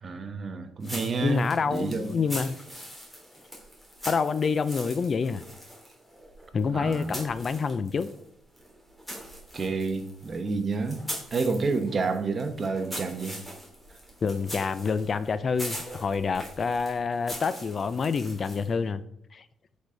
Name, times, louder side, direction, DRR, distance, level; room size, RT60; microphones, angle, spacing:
voice 1, 0.0-2.3 6.7-7.2 9.5-11.0 11.3-13.4, right 4 dB, 40° right, 1.1 m, -29 dB
sound 1, 0.8-8.2 8.5-18.8, equal, 5° left, 3.2 m, -42 dB
voice 2, 1.2-2.6 4.1-5.4 6.5-8.1 14.2-19.0 19.3-19.4, left 5 dB, 45° left, 0.5 m, -27 dB
8.3 x 5.0 x 3.9 m
cardioid pair, 90°, 0 cm